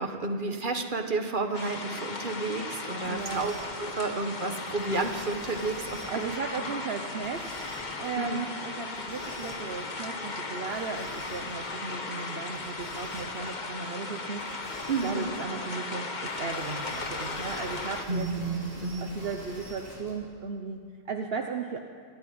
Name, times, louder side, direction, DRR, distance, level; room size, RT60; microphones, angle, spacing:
voice 1, 0.0-3.5 3.8-6.3 6.6-6.7 8.2-8.5 14.9-15.3 18.1-19.2, right 3 dB, 50° right, 6 dB, 1.7 m, -31 dB
sound 1, 1.5-18.0, left 3 dB, 45° left, 1.5 m, -37 dB
sound 2, 3.0-3.9 4.8-6.4 7.2-8.1 8.9-9.8 10.7-11.7 12.5-13.5 14.4-15.4 16.3-20.1, equal, 85° left, 7.1 m, -46 dB
voice 2, 3.0-3.5 6.1-7.6 8.0-18.3 19.0-21.8, right 5 dB, 70° right, 4 dB, 1.3 m, -36 dB
27.0 x 13.0 x 9.6 m, 2.2 s
omnidirectional pair, 1.1 m